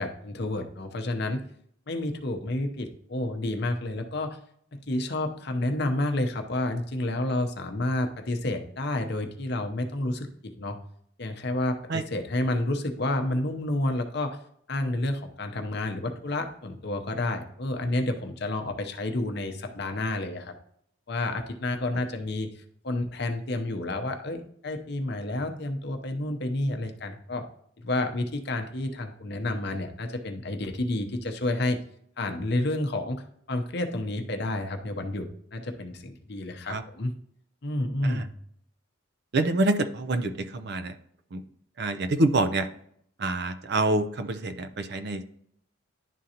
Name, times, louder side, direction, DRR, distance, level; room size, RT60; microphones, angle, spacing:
voice 1, 0.0-1.4 1.9-4.4 4.7-10.8 11.2-14.4 14.7-20.5 21.1-27.5 27.8-31.8 32.2-33.2 33.5-37.1 37.6-38.3, left 2 dB, 55° left, 5 dB, 0.7 m, -30 dB
voice 2, 39.3-41.0 41.3-41.4 41.8-42.7 43.2-45.2, right 2 dB, 55° right, 10 dB, 0.5 m, -26 dB
11.0 x 3.8 x 2.8 m, 0.67 s
head